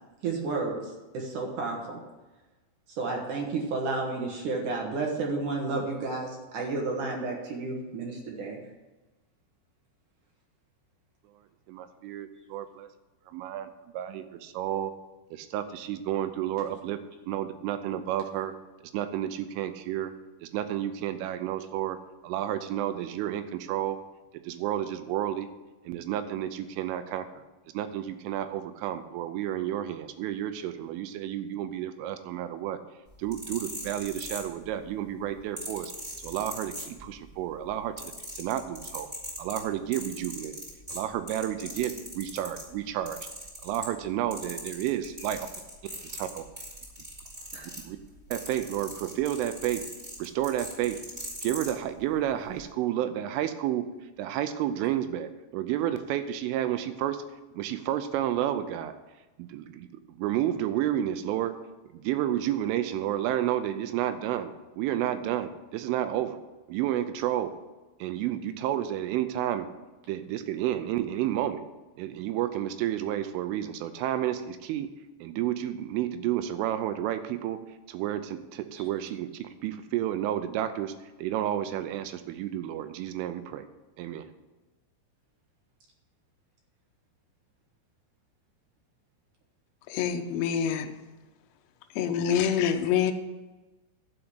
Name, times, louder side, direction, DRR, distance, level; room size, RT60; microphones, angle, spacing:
voice 1, 0.2-0.8 1.1-2.0 2.9-8.6 47.5-47.7, right 3 dB, 65° right, 0 dB, 2.1 m, -31 dB
voice 2, 11.7-12.9 13.3-14.9 15.3-17.0 17.3-18.5 18.9-20.1 20.4-22.0 22.2-24.0 24.4-25.5 25.8-27.3 27.7-32.8 33.2-35.9 36.2-39.1 39.4-40.6 40.9-43.2 43.6-45.5 46.1-46.4 47.8-48.0 48.3-49.8 50.2-51.0 51.4-53.9 54.2-57.2 57.5-58.9 59.4-59.9 60.2-61.6 61.9-66.4 66.7-67.5 68.0-69.7 70.1-71.6 72.0-74.9 75.2-77.6 77.9-80.9 81.2-83.7 84.0-84.3, right 12 dB, 85° right, 10 dB, 3.1 m, -31 dB
sound 1, 33.1-34.9 35.6-37.3 37.6-42.7 43.1-44.1 44.3-51.7 52.5-52.6, equal, 10° right, 2.9 m, -40 dB
voice 3, 89.9-90.9 92.0-93.1, left 8 dB, 80° left, 4 dB, 2.8 m, -26 dB
12.0 x 5.2 x 8.1 m, 1.1 s
omnidirectional pair, 5.7 m